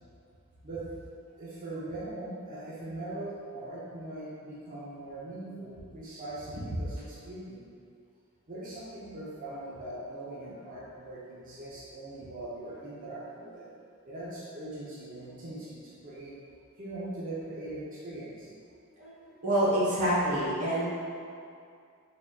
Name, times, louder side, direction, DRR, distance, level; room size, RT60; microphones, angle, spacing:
voice 1, 1.4-7.6 8.5-13.7 14.0-16.4 16.8-18.5, right 2 dB, 40° right, -8 dB, 0.6 m, -41 dB
voice 2, 19.4-20.9, right 1 dB, 80° right, -7 dB, 1.0 m, -26 dB
3.9 x 3.5 x 2.3 m, 2.4 s
head